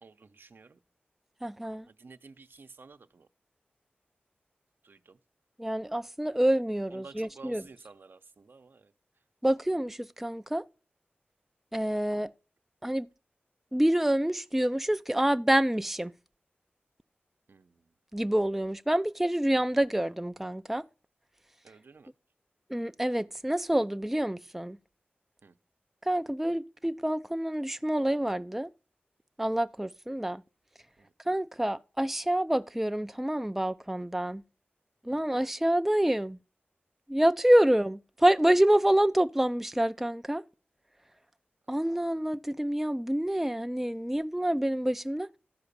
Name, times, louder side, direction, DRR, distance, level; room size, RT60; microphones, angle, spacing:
voice 1, 0.0-0.8 1.9-3.3 4.8-5.2 6.2-6.4 6.9-8.9 11.9-12.0 17.5-17.8 21.6-22.1 25.4-25.5 31.0-31.1 35.1-35.3, right 4 dB, 65° right, 0.8 m, -52 dB
voice 2, 1.4-1.8 5.6-7.6 9.4-10.6 11.7-12.3 12.8-13.1 13.7-16.1 18.1-20.8 22.7-24.8 26.1-28.7 29.4-30.4 31.3-34.4 35.1-36.4 37.1-40.4 41.7-45.3, right 1 dB, 5° right, 0.4 m, -27 dB
13.5 x 4.9 x 6.9 m
cardioid pair, 60°, 4 cm